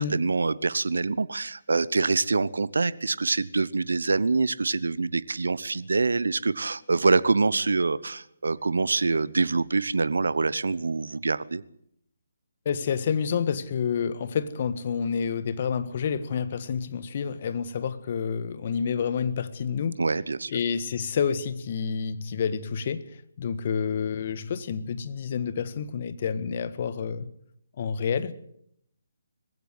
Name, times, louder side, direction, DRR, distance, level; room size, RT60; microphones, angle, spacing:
voice 1, 0.0-11.6 20.0-20.5, right 3 dB, 70° right, 18 dB, 0.9 m, -25 dB
voice 2, 12.6-20.0 20.5-27.3 27.8-28.3, left 6 dB, 45° left, 13 dB, 1.6 m, -29 dB
21.0 x 15.5 x 8.1 m, 0.70 s
figure-of-eight pair, 145°, 0 cm